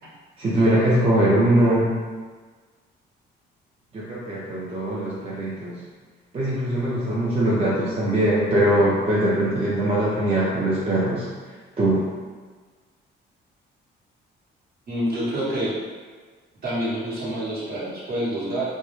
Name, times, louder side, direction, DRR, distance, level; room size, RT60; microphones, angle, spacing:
voice 1, 0.4-1.9 3.9-5.8 6.3-11.3 11.8-12.1, right 1 dB, 30° right, -7 dB, 0.5 m, -21 dB
voice 2, 14.9-15.8 16.6-18.6, right 1 dB, 50° right, -7 dB, 0.9 m, -27 dB
2.1 x 2.0 x 3.0 m, 1.4 s
cardioid pair, 90°, 20 cm